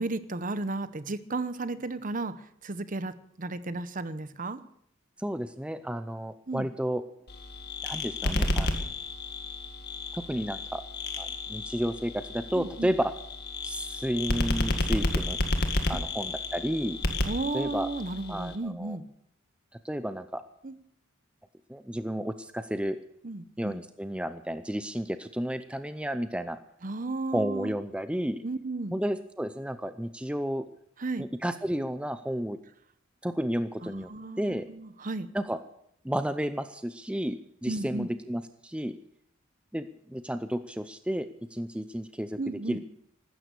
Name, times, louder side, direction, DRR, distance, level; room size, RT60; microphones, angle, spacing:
voice 1, 0.0-4.6 6.5-6.7 12.6-12.9 15.9-16.0 17.3-19.0 20.6-20.7 23.2-23.8 26.8-27.7 28.4-29.0 31.0-31.3 33.8-35.3 37.7-38.1 42.4-42.8, right 2 dB, 40° right, 14 dB, 0.8 m, -34 dB
voice 2, 5.2-7.0 7.8-8.9 10.1-10.8 11.2-13.1 13.6-15.4 15.9-17.0 17.5-17.9 18.3-19.0 19.8-20.4 21.7-23.0 23.6-26.6 27.3-28.4 28.9-30.7 31.2-32.6 33.2-34.1 34.4-34.7 35.3-35.6 36.0-39.0 39.7-42.4 42.7-42.8, equal, 5° right, 10 dB, 0.5 m, -32 dB
sound 1, 7.3-18.6, left 2 dB, 50° left, 1.9 m, -31 dB
15.5 x 12.5 x 6.8 m, 0.70 s
head